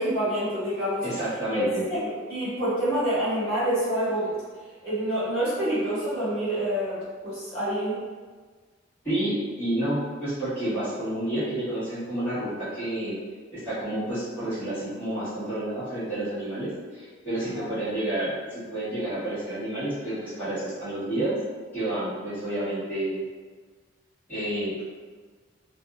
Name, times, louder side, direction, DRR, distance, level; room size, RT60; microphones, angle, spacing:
voice 1, 0.0-1.0 1.5-1.6 1.9-4.3 4.8-8.0 17.4-17.7, right 1 dB, 25° left, -14 dB, 1.4 m, -27 dB
voice 2, 1.0-1.8 9.0-13.2 13.5-21.3 21.7-23.2 24.3-24.8, right 1 dB, 10° left, -17 dB, 1.4 m, -30 dB
2.6 x 2.4 x 2.4 m, 1.5 s
head